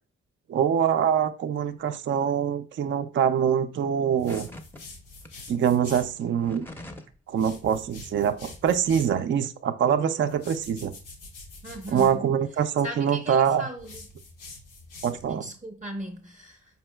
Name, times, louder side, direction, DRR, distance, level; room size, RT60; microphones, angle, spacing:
voice 1, 0.5-4.5 5.5-6.7 7.3-10.9 11.9-13.6 15.0-15.5, right 8 dB, 40° right, 0.4 m, -24 dB
sound 1, 4.2-6.1 7.3-9.2 10.3-12.2 13.8-15.4, left 2 dB, 85° left, 0.7 m, -45 dB
sound 2, 4.3-4.8 5.2-5.3 6.2-7.2 7.4-7.7, left 1 dB, 5° left, 0.6 m, -43 dB
voice 2, 11.6-14.0 15.3-16.8, equal, 25° right, 0.8 m, -38 dB
4.3 x 2.8 x 2.2 m
supercardioid pair, 45°, 31 cm